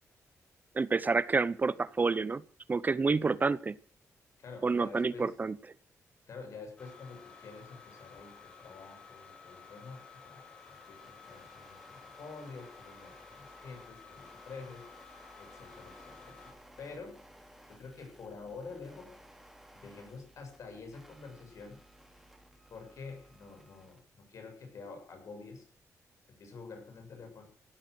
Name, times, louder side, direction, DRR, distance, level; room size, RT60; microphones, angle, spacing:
voice 1, 0.7-2.4 2.7-3.8 4.6-5.6, right 4 dB, 30° right, 19 dB, 0.6 m, -28 dB
voice 2, 3.1-3.4 4.4-5.4 6.3-14.9 15.4-17.2 17.7-19.1 19.7-21.8 22.7-25.7 26.3-27.5, left 4 dB, 65° left, 4 dB, 7.2 m, -48 dB
sound 1, 6.8-16.5, left 5 dB, 15° left, 5.4 m, -54 dB
sound 2, 10.6-24.0, right 1 dB, 5° right, 2.7 m, -58 dB
16.0 x 12.0 x 6.3 m, 0.41 s
cardioid pair, 105°, 6 cm